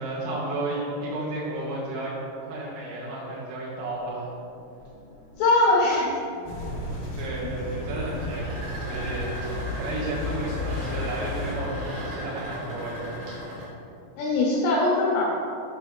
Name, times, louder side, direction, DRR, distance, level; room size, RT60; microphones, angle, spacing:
voice 1, 0.0-2.1 2.4-4.3 6.7-13.1, right 2 dB, 80° right, -8 dB, 4.1 m, -32 dB
sound 1, 4.1-13.6, equal, 60° right, 2.5 m, -39 dB
voice 2, 5.4-6.1 14.2-15.2, left 2 dB, 80° left, -3 dB, 2.6 m, -21 dB
sound 2, 6.4-11.5, left 2 dB, 65° left, 2.4 m, -33 dB
8.1 x 6.8 x 3.2 m, 2.8 s
omnidirectional pair, 5.9 m